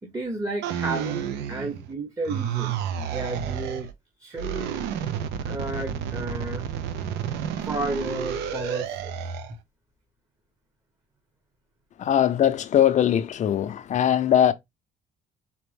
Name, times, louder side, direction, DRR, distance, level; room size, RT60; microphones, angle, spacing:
voice 1, 0.0-3.9 4.2-4.7 5.4-6.7 7.6-9.3, right 2 dB, 20° right, 1.0 m, -32 dB
sound 1, 0.6-1.9 2.2-3.9 4.3-9.5, right 8 dB, 90° right, 0.7 m, -31 dB
voice 2, 12.0-14.5, left 10 dB, 45° left, 0.6 m, -21 dB
4.2 x 2.9 x 3.4 m
cardioid pair, 110°, 17 cm